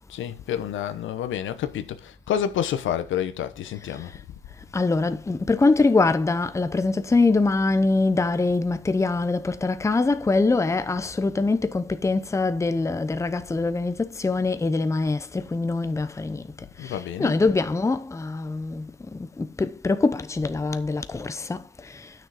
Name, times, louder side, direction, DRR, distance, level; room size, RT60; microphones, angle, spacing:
voice 1, 0.1-4.1 16.8-17.3, left 9 dB, 75° left, 1.0 m, -29 dB
voice 2, 4.7-16.4 16.8-21.6, left 3 dB, 15° left, 0.7 m, -23 dB
9.1 x 6.4 x 4.9 m
cardioid pair, 90°, 20 cm